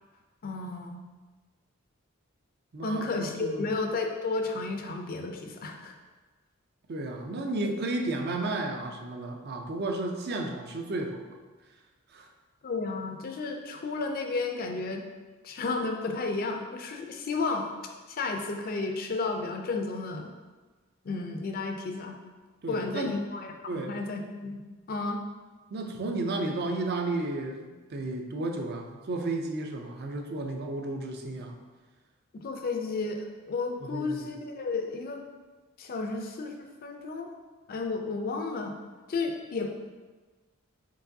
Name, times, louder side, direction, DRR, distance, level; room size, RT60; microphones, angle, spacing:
voice 1, 0.4-1.0 2.8-5.9 12.6-15.0 15.4-17.7 18.1-20.3 21.0-22.2 22.7-23.5 23.9-24.6 24.9-25.2 32.4-35.2 35.8-37.3 37.7-38.7 39.1-39.7, left 3 dB, 45° left, 4 dB, 0.4 m, -32 dB
voice 2, 2.7-3.7 6.9-11.4 12.1-12.3 22.6-23.2 23.7-24.0 25.7-31.6 33.8-34.3, right 2 dB, 50° right, 4 dB, 0.4 m, -33 dB
4.6 x 3.7 x 2.6 m, 1.3 s
head